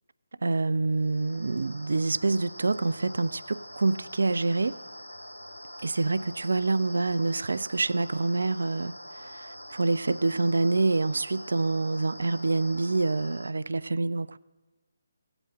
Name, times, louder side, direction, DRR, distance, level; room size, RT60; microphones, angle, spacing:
voice 1, 0.4-4.8 5.8-14.4, right 3 dB, 60° right, 0.4 m, -27 dB
sound 1, 0.9-13.5, equal, 85° left, 0.9 m, -44 dB
16.0 x 8.0 x 7.4 m
figure-of-eight pair, 145°, 0 cm